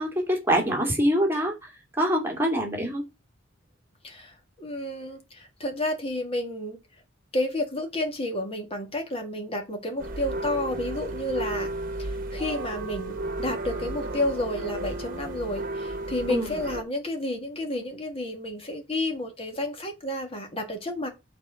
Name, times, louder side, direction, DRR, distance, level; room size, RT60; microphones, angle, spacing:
voice 1, 0.0-1.7 2.0-3.1 16.3-16.5, equal, 10° right, 2.4 m, -25 dB
voice 2, 4.0-6.8 7.3-11.7 12.0-21.1, left 1 dB, 30° left, 1.9 m, -31 dB
sound 1, 10.0-16.8, right 2 dB, 45° right, 1.3 m, -33 dB
6.9 x 4.4 x 6.2 m
head